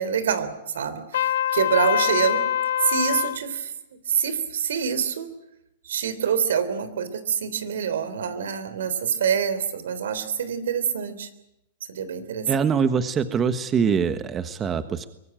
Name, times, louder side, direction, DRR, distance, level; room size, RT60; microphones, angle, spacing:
voice 1, 0.0-2.5 2.8-5.3 5.8-11.3 11.9-12.5, right 7 dB, 85° right, 13 dB, 3.4 m, -26 dB
Trumpet, 1.1-3.4, left 11 dB, 80° left, 0.9 m, -24 dB
voice 2, 12.5-15.1, right 6 dB, 25° right, 10 dB, 1.4 m, -23 dB
24.0 x 19.0 x 9.0 m, 0.87 s
hypercardioid pair, 130°, 0 cm